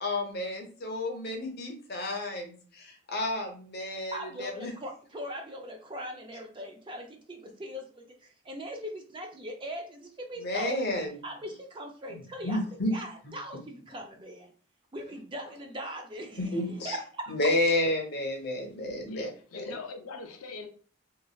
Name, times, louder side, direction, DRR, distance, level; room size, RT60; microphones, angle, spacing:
voice 1, 0.0-4.7 10.4-11.2 12.1-12.9 16.4-17.0 17.3-19.8, left 1 dB, 50° left, 2 dB, 0.7 m, -31 dB
voice 2, 3.9-10.8 11.2-12.6 12.9-14.5 14.9-17.3, equal, 25° right, 3 dB, 0.4 m, -40 dB
voice 3, 19.1-20.7, left 4 dB, 85° left, 5 dB, 0.5 m, -42 dB
3.2 x 2.3 x 2.3 m, 0.41 s
head